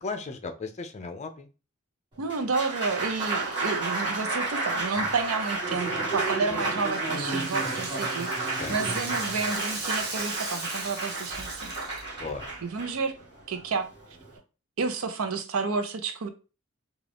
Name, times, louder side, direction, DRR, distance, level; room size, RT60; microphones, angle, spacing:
voice 1, 0.0-1.5 6.5-6.6 8.6-8.7 12.2-12.4, left 4 dB, 35° left, 7 dB, 0.5 m, -36 dB
Applause, 2.1-14.4, right 3 dB, 25° right, 1.8 m, -31 dB
voice 2, 2.2-11.7 12.6-13.1 13.5-13.9 14.8-16.3, right 4 dB, 80° right, 8 dB, 0.6 m, -30 dB
Rattle (instrument), 6.1-12.3, right 3 dB, 50° right, 1.1 m, -38 dB
3.7 x 2.4 x 3.4 m, 0.33 s
head